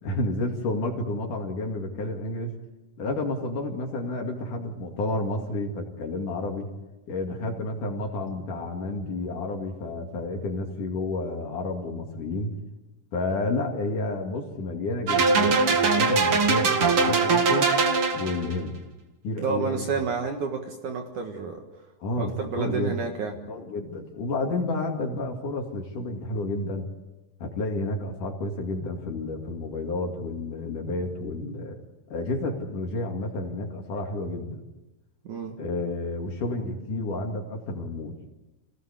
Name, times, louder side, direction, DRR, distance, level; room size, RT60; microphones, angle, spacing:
voice 1, 0.0-2.6 3.0-6.7 7.1-12.5 13.1-17.7 18.1-18.8 19.2-19.8 22.0-22.3 22.6-23.0 23.5-26.9 27.4-31.8 32.1-34.6 35.6-38.2, left 2 dB, 60° left, 1 dB, 3.8 m, -30 dB
sound 1, 15.1-18.5, right 4 dB, 45° right, 2.4 m, -21 dB
voice 2, 19.4-21.6 22.2-23.3 35.2-35.6, right 5 dB, 60° right, 3 dB, 2.9 m, -30 dB
27.5 x 17.5 x 8.4 m, 1.1 s
omnidirectional pair, 4.2 m